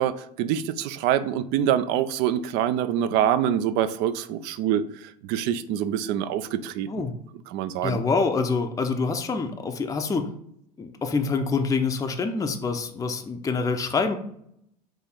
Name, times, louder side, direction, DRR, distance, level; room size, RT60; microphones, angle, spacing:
voice 1, 0.0-7.0 7.5-8.0, right 10 dB, 55° right, 13 dB, 0.4 m, -25 dB
voice 2, 6.9-7.2 7.8-10.3 10.8-14.2, left 4 dB, 15° left, 5 dB, 0.5 m, -26 dB
4.7 x 2.5 x 4.3 m, 0.70 s
hypercardioid pair, 85°, 21 cm